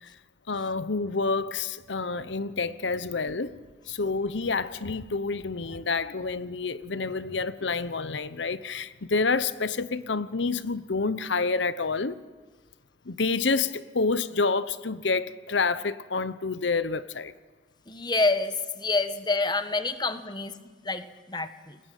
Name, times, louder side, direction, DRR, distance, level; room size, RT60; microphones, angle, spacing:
voice 1, 0.5-3.5 3.9-12.2 13.1-17.3, left 4 dB, 85° left, 1.0 m, -28 dB
voice 2, 17.9-21.8, left 3 dB, 25° left, 1.3 m, -28 dB
30.0 x 21.0 x 9.3 m
head